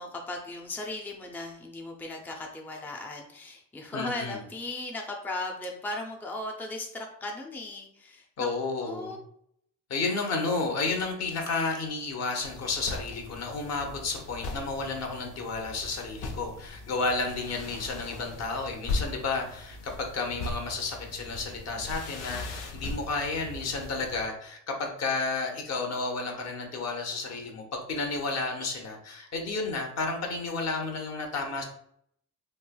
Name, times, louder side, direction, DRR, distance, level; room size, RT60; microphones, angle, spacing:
voice 1, 0.0-8.5 8.8-9.2, left 2 dB, 5° left, 1 dB, 0.5 m, -37 dB
voice 2, 3.9-4.4 8.4-9.2 9.9-31.6, left 3 dB, 60° left, 2 dB, 0.8 m, -32 dB
sound 1, 12.4-24.2, left 2 dB, 85° left, 0.6 m, -39 dB
3.2 x 2.8 x 2.2 m, 0.68 s
cardioid pair, 90°, 30 cm